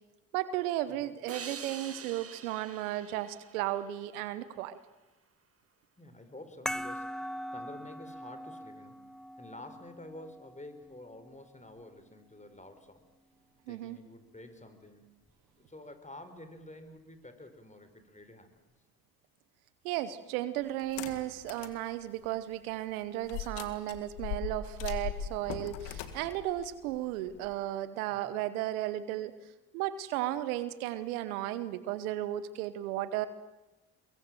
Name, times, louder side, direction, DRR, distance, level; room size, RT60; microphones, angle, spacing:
voice 1, 0.3-4.8 13.7-14.0 19.8-29.3 29.7-33.3, right 13 dB, 90° right, 15 dB, 1.1 m, -34 dB
sound 1, 1.3-4.6, right 6 dB, 35° right, 1.4 m, -46 dB
voice 2, 6.0-9.0 9.4-13.0 13.7-15.1 15.6-18.5 28.1-28.4, left 1 dB, 15° left, 9 dB, 4.6 m, -50 dB
sound 2, 6.7-11.7, equal, ahead, 0.8 m, -42 dB
sound 3, 20.8-21.8 22.2-22.3 23.3-27.5, left 8 dB, 80° left, 1.9 m, -39 dB
23.5 x 22.0 x 7.6 m, 1.1 s
hypercardioid pair, 50°, 42 cm